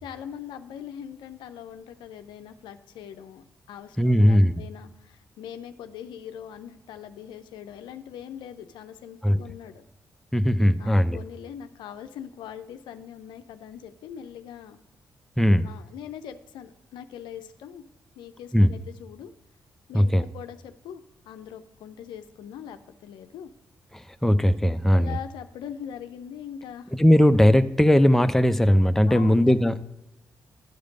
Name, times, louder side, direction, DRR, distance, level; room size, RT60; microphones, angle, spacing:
voice 1, 0.0-9.8 10.8-14.8 15.6-17.8 18.2-19.3 19.9-23.5 24.9-26.9 29.1-29.8, left 9 dB, 75° left, 9 dB, 0.6 m, -41 dB
voice 2, 4.0-4.5 9.2-9.4 10.3-11.2 15.4-15.7 18.5-18.7 19.9-20.2 23.9-25.2 27.0-29.7, equal, 5° left, 10 dB, 0.6 m, -19 dB
10.5 x 5.0 x 6.4 m, 0.94 s
hypercardioid pair, 40°, 8 cm